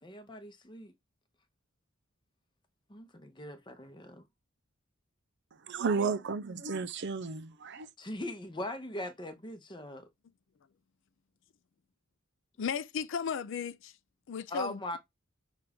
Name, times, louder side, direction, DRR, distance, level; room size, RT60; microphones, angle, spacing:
voice 1, 0.0-0.9 2.9-4.2 8.0-10.1 14.5-15.0, left 1 dB, 20° left, 0.8 m, -40 dB
voice 2, 5.7-7.9, right 5 dB, 55° right, 0.5 m, -33 dB
voice 3, 12.6-13.9 14.3-15.0, left 6 dB, 60° left, 0.4 m, -35 dB
5.9 x 2.4 x 3.4 m
head